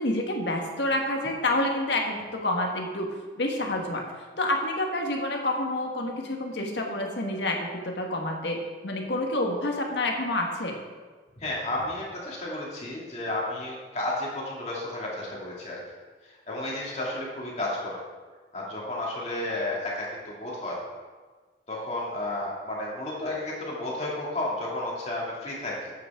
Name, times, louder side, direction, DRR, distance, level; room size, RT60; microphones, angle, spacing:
voice 1, 0.0-8.6 8.8-10.8, left 1 dB, 75° left, 1 dB, 1.5 m, -28 dB
voice 2, 11.4-15.8 16.2-18.0 18.5-20.8 21.7-25.9, left 1 dB, 35° left, -5 dB, 2.5 m, -32 dB
11.0 x 8.4 x 3.6 m, 1.4 s
head